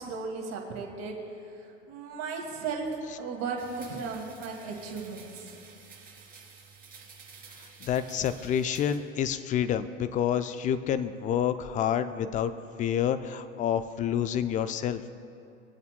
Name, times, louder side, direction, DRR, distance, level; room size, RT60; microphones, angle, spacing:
voice 1, 0.0-1.5 1.9-5.6, right 4 dB, 45° right, 0 dB, 2.2 m, -36 dB
sound 1, 3.6-9.0, right 5 dB, 25° right, 2.6 m, -51 dB
voice 2, 7.8-12.5 12.8-15.0, left 9 dB, 20° left, 12 dB, 0.4 m, -28 dB
24.0 x 8.1 x 2.2 m, 2.5 s
hypercardioid pair, 90°, 37 cm